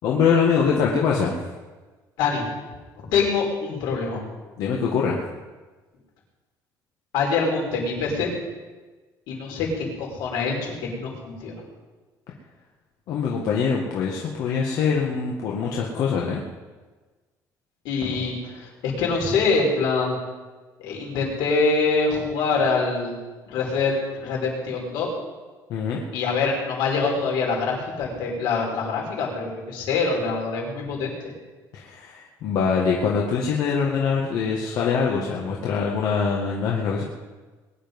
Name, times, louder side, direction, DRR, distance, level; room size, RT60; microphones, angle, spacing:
voice 1, 0.0-1.5 4.6-5.2 13.1-16.4 25.7-26.0 31.7-37.0, left 6 dB, 60° left, -2 dB, 1.9 m, -23 dB
voice 2, 2.9-4.2 7.1-8.3 9.3-11.6 17.8-20.1 20.8-23.2 23.5-25.1 26.1-31.1, left 4 dB, 85° left, -1 dB, 5.1 m, -25 dB
21.0 x 10.5 x 5.5 m, 1.3 s
cardioid pair, 170°, 7 cm